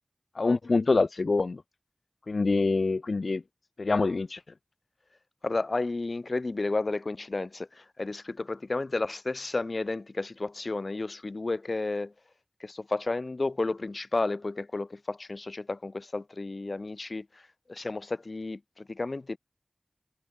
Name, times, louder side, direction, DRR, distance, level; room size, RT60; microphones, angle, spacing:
voice 1, 0.4-1.6 2.3-3.4 3.8-4.4, left 3 dB, 90° left, 0.3 m, -25 dB
voice 2, 5.4-12.1 12.6-17.3 17.7-19.4, left 3 dB, 70° left, 0.8 m, -32 dB
wide cardioid pair, 40°, 0 cm